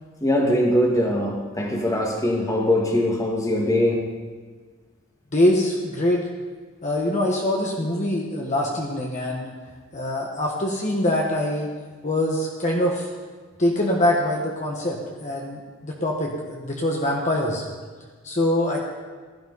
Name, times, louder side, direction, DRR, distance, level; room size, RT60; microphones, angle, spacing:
voice 1, 0.2-4.0, left 1 dB, 15° left, 0 dB, 2.0 m, -22 dB
voice 2, 5.3-6.3 6.8-9.5 9.9-11.7 12.0-13.1 13.6-17.6 18.2-18.8, left 1 dB, 35° left, -2 dB, 1.5 m, -24 dB
15.5 x 12.5 x 4.1 m, 1.5 s
head